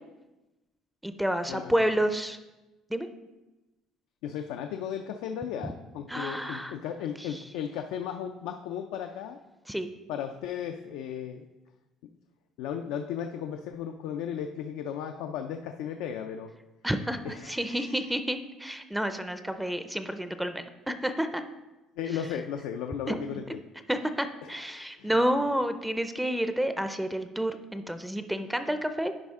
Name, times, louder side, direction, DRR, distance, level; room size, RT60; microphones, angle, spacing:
voice 1, 1.0-2.4 2.9-3.1 5.6-5.7 6.1-6.7 7.3-7.4 9.7-9.9 16.8-21.4 23.1-23.3 23.9-29.1, equal, 5° right, 9 dB, 0.4 m, -30 dB
voice 2, 4.2-9.4 10.1-11.5 12.6-16.5 17.2-18.1 22.0-23.6 24.4-25.2, left 8 dB, 90° left, 5 dB, 0.4 m, -35 dB
10.5 x 4.8 x 3.6 m, 1.1 s
cardioid pair, 115°, 0 cm